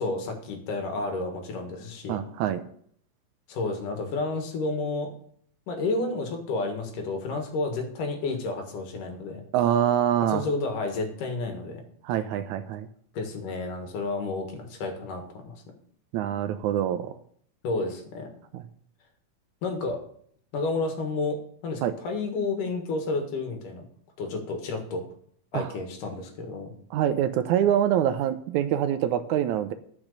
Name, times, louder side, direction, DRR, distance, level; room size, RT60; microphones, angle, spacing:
voice 1, 0.0-2.2 3.5-5.1 5.7-9.4 10.3-11.8 13.1-15.6 17.6-18.3 19.6-20.0 20.5-21.4 21.6-23.8 24.2-25.0 25.5-26.7, left 3 dB, 85° left, 4 dB, 3.2 m, -31 dB
voice 2, 2.1-2.6 9.5-10.4 12.0-12.9 16.1-17.1 18.5-18.6 21.8-21.9 25.5-25.7 26.9-29.7, right 10 dB, 80° right, 10 dB, 1.9 m, -25 dB
10.5 x 6.0 x 6.6 m, 0.62 s
omnidirectional pair, 3.7 m